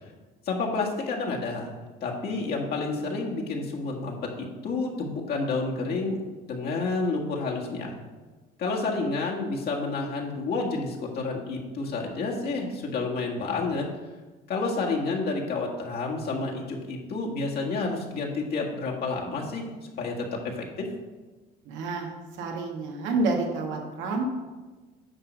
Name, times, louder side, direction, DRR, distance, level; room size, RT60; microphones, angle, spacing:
voice 1, 0.4-1.7 2.0-8.0 8.6-13.8 14.5-19.7 20.0-20.9, left 3 dB, 50° left, -1 dB, 1.8 m, -30 dB
voice 2, 21.6-22.1 22.4-24.3, right 3 dB, 75° right, 1 dB, 1.7 m, -28 dB
9.7 x 3.7 x 6.3 m, 1.3 s
cardioid pair, 120°, 20 cm